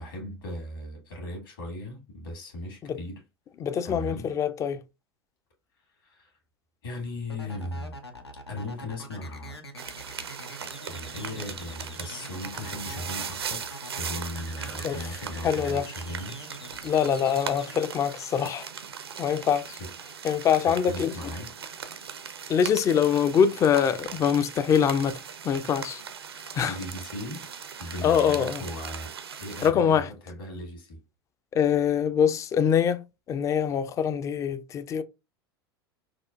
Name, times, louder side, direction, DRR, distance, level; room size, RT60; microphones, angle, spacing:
voice 1, 0.0-3.2 3.8-4.3 6.0-6.4 6.8-8.0 8.5-9.6 10.9-16.4 19.8-19.9 20.6-21.5 26.6-27.5 27.8-29.1 29.4-31.0, left 1 dB, 60° left, 1.7 m, -37 dB
voice 2, 3.6-4.8 14.8-15.0 15.4-15.8 16.8-18.7 19.2-19.8 20.2-21.3 22.5-26.0 26.5-26.8 28.0-28.6 29.6-30.1 31.5-33.0 33.3-35.0, left 8 dB, 25° left, 0.4 m, -24 dB
sound 1, 7.3-17.8, equal, 85° left, 0.7 m, -43 dB
sound 2, 9.8-29.7, right 7 dB, 70° right, 0.6 m, -39 dB
5.9 x 2.4 x 2.4 m
figure-of-eight pair, 85°, 13 cm